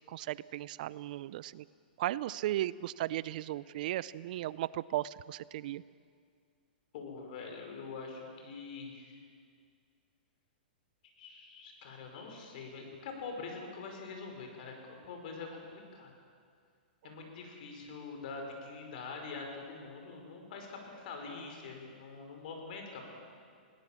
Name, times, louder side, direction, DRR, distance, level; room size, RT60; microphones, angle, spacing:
voice 1, 0.1-1.6 2.0-5.8, right 14 dB, 55° right, 19 dB, 0.5 m, -36 dB
voice 2, 6.9-9.2 11.2-16.1 17.0-23.2, left 4 dB, 55° left, 2 dB, 5.5 m, -44 dB
22.0 x 18.0 x 7.5 m, 2.1 s
hypercardioid pair, 140°, 5 cm